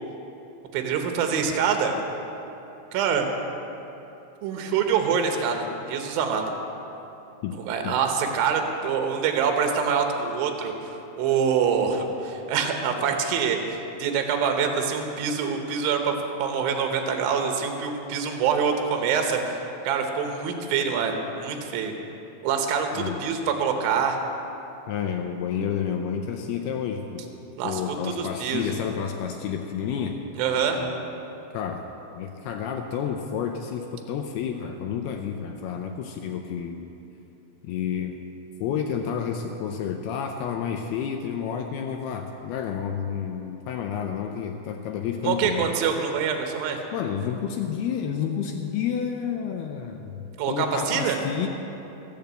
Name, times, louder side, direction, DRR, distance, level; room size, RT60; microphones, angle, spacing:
voice 1, 0.7-1.9 2.9-3.3 4.4-6.5 7.7-16.1 16.4-21.9 22.4-24.2 27.6-28.7 30.4-30.8 45.2-46.8 50.4-51.2, right 6 dB, 70° right, 4 dB, 2.4 m, -25 dB
voice 2, 24.9-27.3 27.6-30.2 31.5-31.9 32.1-36.9 37.6-38.1 38.6-45.7 46.9-51.5, left 8 dB, 85° left, 4 dB, 2.3 m, -30 dB
15.5 x 7.0 x 7.8 m, 3.0 s
omnidirectional pair, 5.2 m